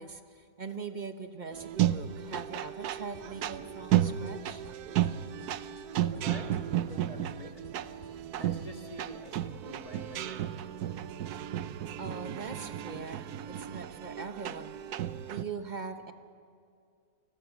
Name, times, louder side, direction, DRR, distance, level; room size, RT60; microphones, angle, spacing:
voice 1, 0.0-4.6 12.0-14.8 15.3-16.1, right 5 dB, 35° right, 8 dB, 1.0 m, -41 dB
sound 1, 1.5-15.4, right 11 dB, 85° right, 1.2 m, -33 dB
sound 2, 3.1-4.3 4.6-5.8 6.1-6.6 6.9-8.8, left 1 dB, 55° left, 2.8 m, -55 dB
voice 2, 6.0-8.0 8.4-12.0 13.5-13.8 15.0-15.5, equal, 25° left, 3 dB, 1.8 m, -49 dB
28.5 x 21.0 x 6.2 m, 2.4 s
omnidirectional pair, 1.6 m